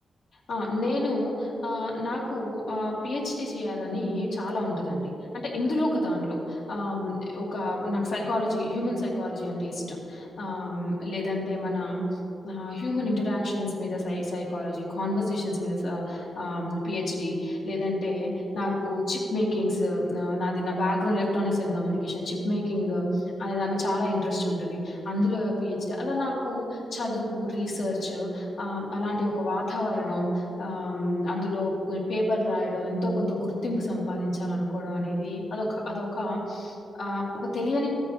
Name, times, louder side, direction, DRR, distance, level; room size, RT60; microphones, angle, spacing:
voice 1, 0.5-12.0 12.4-37.9, left 1 dB, 80° left, -4 dB, 2.3 m, -29 dB
14.0 x 8.8 x 3.2 m, 2.8 s
wide cardioid pair, 115°, 0 cm